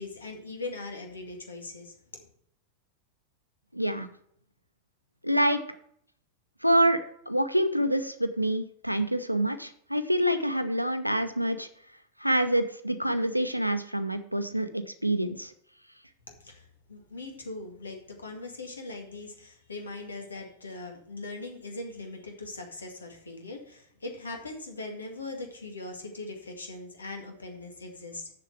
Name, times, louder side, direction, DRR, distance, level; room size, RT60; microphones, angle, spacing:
voice 1, 0.0-2.2 16.4-28.3, left 2 dB, 75° left, 3 dB, 2.0 m, -40 dB
voice 2, 3.7-4.1 5.2-5.6 6.6-11.7 12.2-15.5, right 1 dB, 90° right, 10 dB, 0.8 m, -26 dB
6.9 x 6.7 x 7.9 m, 0.66 s
figure-of-eight pair, 90°, 0 cm